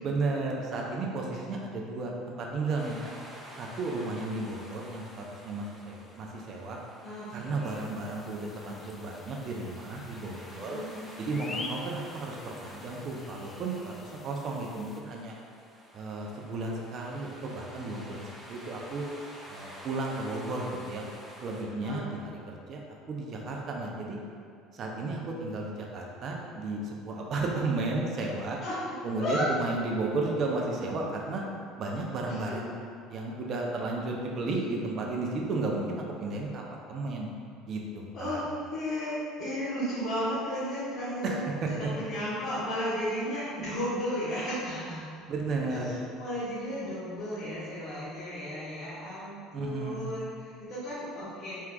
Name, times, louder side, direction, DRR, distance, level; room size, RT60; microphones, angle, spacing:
voice 1, 0.0-3.1 3.6-6.8 7.3-10.8 11.2-15.3 15.9-19.0 19.5-21.0 21.4-22.8 23.1-24.2 24.7-28.6 29.0-31.5 31.8-32.7 33.1-37.3 37.7-38.5 41.2-41.9 45.3-46.0 49.5-50.1, right 2 dB, 50° right, -1 dB, 0.7 m, -33 dB
sound 1, 2.8-21.6, equal, 10° right, 0.9 m, -50 dB
voice 2, 7.0-7.8 10.5-10.9 11.5-11.6 21.6-22.1 28.6-28.7 29.2-29.5 32.5-32.6 38.1-38.4 38.7-41.4 41.7-45.1 45.9-51.6, equal, 45° left, -12 dB, 1.3 m, -34 dB
sound 2, 7.6-15.0, left 3 dB, 30° left, 0.3 m, -46 dB
4.5 x 3.6 x 2.2 m, 2.4 s
hypercardioid pair, 75°, 0 cm